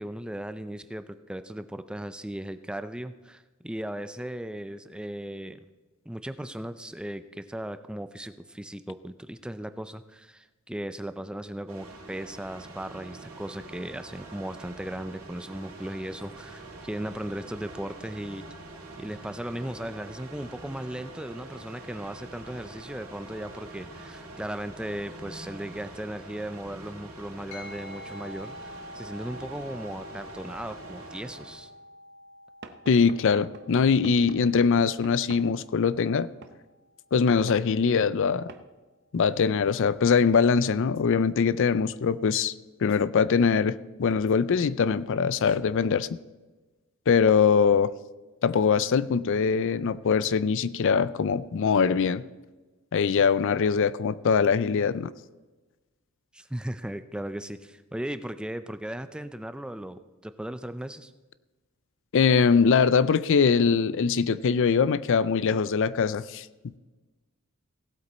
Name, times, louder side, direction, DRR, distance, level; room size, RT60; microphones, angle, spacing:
voice 1, 0.0-5.6 6.1-18.4 19.0-31.7 56.3-61.1, right 1 dB, 5° right, 11 dB, 0.4 m, -37 dB
sound 1, 11.7-31.6, right 2 dB, 70° right, 2.3 m, -45 dB
sound 2, 27.5-37.2, left 1 dB, 90° left, 2.7 m, -48 dB
Knock / Wood, 32.6-35.5 36.4-36.6 37.5-37.7 38.5-38.7, right 3 dB, 50° right, 0.8 m, -47 dB
voice 2, 32.9-36.3 37.1-38.5 39.1-42.5 42.8-46.1 47.1-47.9 48.4-52.2 52.9-55.1 62.1-66.5, left 6 dB, 60° left, 17 dB, 0.4 m, -22 dB
17.0 x 8.2 x 4.2 m, 1.2 s
head